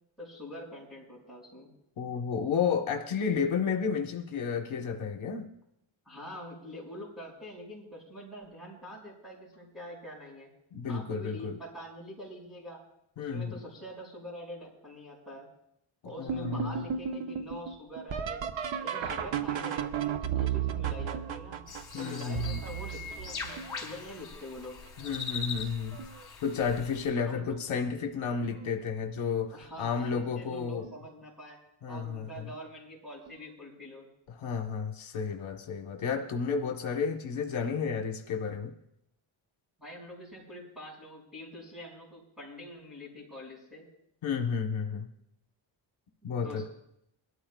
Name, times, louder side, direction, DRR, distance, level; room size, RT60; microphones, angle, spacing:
voice 1, 0.2-1.7 6.0-10.5 10.9-12.8 13.2-15.5 16.0-18.5 18.8-21.7 21.9-24.8 27.2-27.6 29.5-31.6 31.9-34.1 39.8-43.9 46.4-46.7, equal, ahead, -4 dB, 5.6 m, -45 dB
voice 2, 2.0-5.5 10.7-11.6 13.2-13.5 16.2-16.7 21.9-22.6 25.0-26.0 26.4-30.9 31.8-32.3 34.3-38.7 44.2-45.1 46.2-46.7, left 6 dB, 75° left, 3 dB, 1.3 m, -32 dB
sound 1, 16.3-24.0 24.6-25.2 25.6-26.3 27.5-27.6 28.3-28.7 30.8-30.9 33.3-33.4, right 8 dB, 70° right, 0.9 m, -34 dB
sound 2, 21.7-27.1, left 5 dB, 50° left, 3.9 m, -41 dB
22.0 x 13.0 x 2.4 m, 0.78 s
wide cardioid pair, 175°, 48 cm